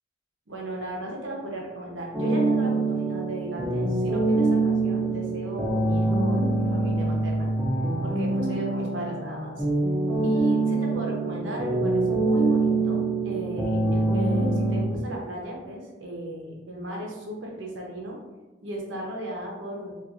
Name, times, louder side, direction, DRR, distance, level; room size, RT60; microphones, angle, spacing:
voice 1, 0.5-7.5 8.0-9.6 10.2-18.2 18.6-19.9, right 1 dB, 85° right, -2 dB, 0.7 m, -36 dB
sound 1, 2.1-14.8, right 2 dB, 5° right, 0.4 m, -24 dB
3.0 x 2.3 x 2.4 m, 1.2 s
head